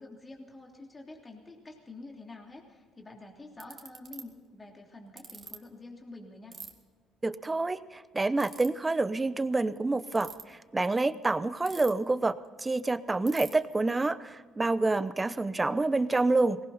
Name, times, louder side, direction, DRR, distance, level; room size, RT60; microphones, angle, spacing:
voice 1, 0.0-6.6, left 2 dB, 25° left, 1 dB, 3.1 m, -47 dB
Ratchet pawl, 2.9-3.0 3.6-4.2 5.2-5.5 6.5-6.7 8.4-8.7 10.0-10.4 11.7-12.1 12.4-12.5 12.8-12.9 13.3-13.5, right 5 dB, 40° right, 2.2 m, -43 dB
voice 2, 7.2-16.6, right 3 dB, 20° right, 14 dB, 0.8 m, -28 dB
19.5 x 17.5 x 4.2 m, 1.5 s
supercardioid pair, 85°, 0 cm